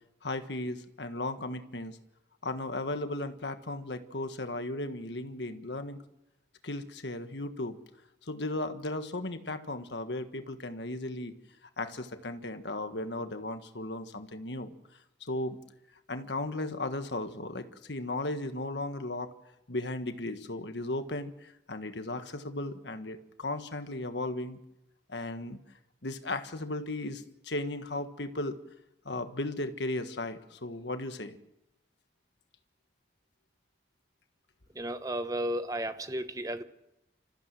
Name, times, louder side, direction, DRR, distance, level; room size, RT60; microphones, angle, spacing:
voice 1, 0.2-2.0 2.4-6.0 6.6-7.8 8.2-11.3 11.8-14.7 15.2-15.6 16.1-19.3 19.7-24.6 25.1-25.6 26.0-28.6 29.0-31.4, left 2 dB, 70° left, 8 dB, 1.5 m, -36 dB
voice 2, 34.7-36.6, right 1 dB, 20° right, 10 dB, 1.0 m, -33 dB
27.0 x 15.0 x 7.7 m, 0.90 s
head